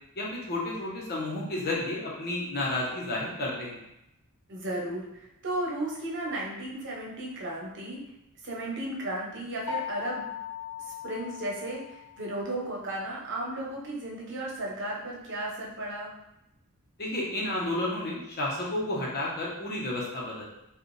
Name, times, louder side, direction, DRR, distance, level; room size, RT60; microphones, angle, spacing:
voice 1, 0.2-3.8 17.0-20.4, left 1 dB, 45° left, -4 dB, 1.1 m, -31 dB
voice 2, 4.5-8.0 8.4-10.2 10.8-16.1, right 1 dB, 55° right, -3 dB, 1.0 m, -34 dB
sound 1, 9.7-12.4, left 8 dB, 80° left, 1.0 m, -38 dB
4.8 x 2.4 x 3.2 m, 0.86 s
head